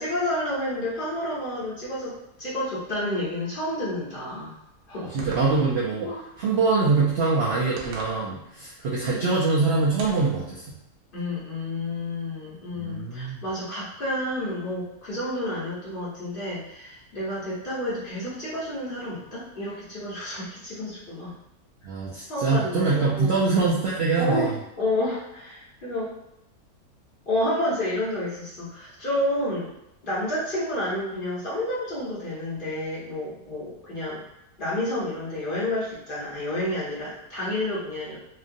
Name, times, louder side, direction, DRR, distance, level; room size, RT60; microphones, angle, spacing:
voice 1, 0.0-4.6 4.9-5.1 6.0-6.2 9.0-9.3 11.1-21.3 22.2-23.4 24.2-24.5 24.8-26.1 27.3-29.7 30.0-34.2 34.6-38.2, left 1 dB, 40° left, -9 dB, 1.0 m, -30 dB
voice 2, 5.0-6.1 6.4-10.7 12.7-13.4 21.8-24.5, right 3 dB, 65° right, -5 dB, 0.6 m, -24 dB
sound 1, 5.2-5.9 7.8-8.2 10.0-10.4, right 2 dB, 90° right, 1.2 m, -40 dB
2.9 x 2.5 x 2.5 m, 0.84 s
omnidirectional pair, 1.6 m